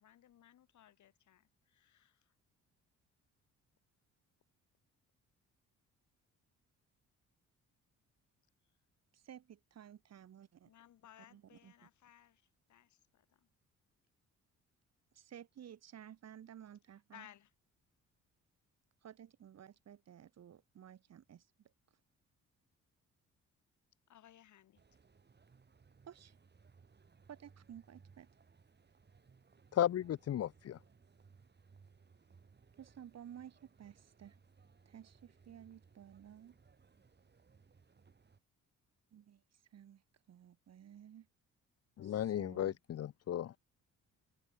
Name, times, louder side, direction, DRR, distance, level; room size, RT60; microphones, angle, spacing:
voice 1, 0.0-2.3 10.7-13.5 16.9-17.5 24.1-24.8, left 11 dB, 70° left, 6.7 m, -61 dB
voice 2, 9.1-10.7 11.3-11.7 15.2-17.2 19.0-21.4 26.1-26.4 27.3-28.3 32.8-34.3 34.9-36.5 39.1-39.4 39.7-40.0 40.3-41.3 42.0-42.7, right 9 dB, 60° right, 2.4 m, -54 dB
sound 1, 24.8-38.4, right 5 dB, 35° right, 6.8 m, -65 dB
voice 3, 29.7-30.8 42.0-43.6, left 11 dB, 55° left, 0.9 m, -35 dB
cardioid pair, 90°, 30 cm